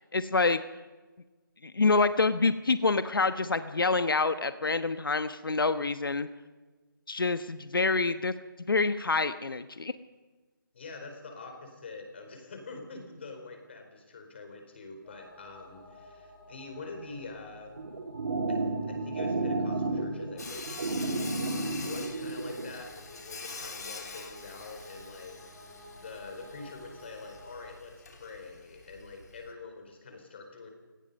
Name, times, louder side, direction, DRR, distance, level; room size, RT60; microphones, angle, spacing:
voice 1, 0.1-0.6 1.6-6.3 7.1-8.3 8.7-9.9, left 3 dB, 80° left, 11 dB, 1.2 m, -27 dB
voice 2, 10.7-17.8 18.5-21.2 21.8-25.4 26.0-30.7, left 3 dB, 30° left, 4 dB, 4.2 m, -45 dB
sound 1, 15.0-27.8, left 1 dB, 10° left, 5.2 m, -53 dB
sound 2, 17.8-22.7, right 2 dB, 45° right, 2.7 m, -32 dB
Sawing, 20.4-29.5, left 4 dB, 50° left, 3.3 m, -45 dB
29.5 x 18.0 x 5.4 m, 1.3 s
figure-of-eight pair, 175°, 11 cm